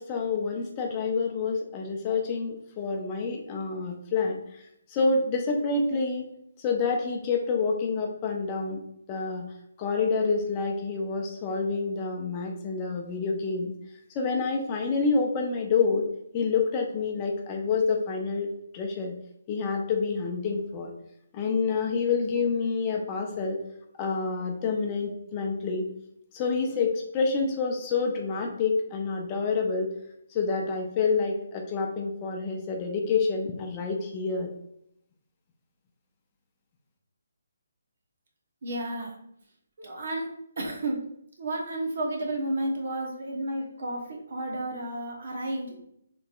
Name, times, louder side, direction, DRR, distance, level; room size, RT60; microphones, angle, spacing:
voice 1, 0.0-6.3 6.6-8.8 9.1-9.4 9.8-13.7 14.1-16.1 16.3-19.1 19.5-20.9 21.3-23.6 24.0-25.9 26.3-29.9 30.3-34.5, left 4 dB, 25° left, 2 dB, 0.5 m, -28 dB
voice 2, 38.6-39.1 39.8-40.3 40.6-41.0 41.4-45.8, right 1 dB, 60° right, 0 dB, 1.1 m, -32 dB
4.0 x 3.3 x 2.4 m, 0.74 s
figure-of-eight pair, 150°, 0 cm